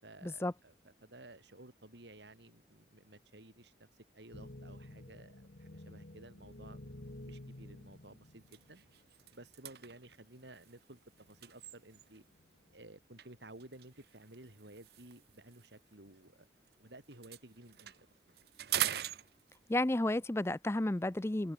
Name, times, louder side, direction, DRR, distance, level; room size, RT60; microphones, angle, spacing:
voice 1, 0.0-3.9 4.1-6.9 7.2-8.8 9.3-12.2 12.7-16.5 16.8-17.9 18.3-18.4, right 1 dB, 80° right, 4.5 m, -55 dB
sound 1, 4.3-9.1 9.8-9.9 11.1-11.6 12.3-12.7, left 1 dB, 60° left, 1.6 m, -51 dB
sound 2, 7.2-7.5 7.9-8.0 8.4-12.3 13.2-16.7 17.0-19.9, right 12 dB, 60° right, 0.7 m, -43 dB
voice 2, 19.7-21.5, left 1 dB, 15° left, 0.5 m, -32 dB
open air
head